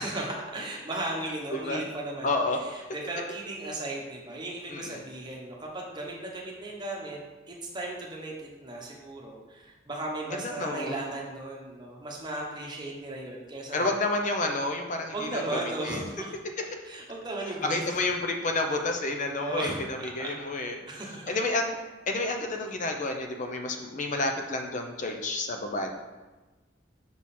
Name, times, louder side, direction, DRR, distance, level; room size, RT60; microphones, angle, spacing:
voice 1, 0.0-2.3 2.7-7.2 7.5-14.0 15.1-16.3 16.8-17.8 19.4-20.3 20.9-21.4, right 2 dB, 25° right, -2 dB, 1.0 m, -36 dB
voice 2, 1.5-1.8 2.2-2.6 4.7-5.0 10.3-11.0 13.7-16.0 17.6-20.8 21.3-21.8 22.1-25.9, left 2 dB, 40° left, 4 dB, 0.6 m, -30 dB
6.1 x 3.7 x 4.2 m, 1.2 s
head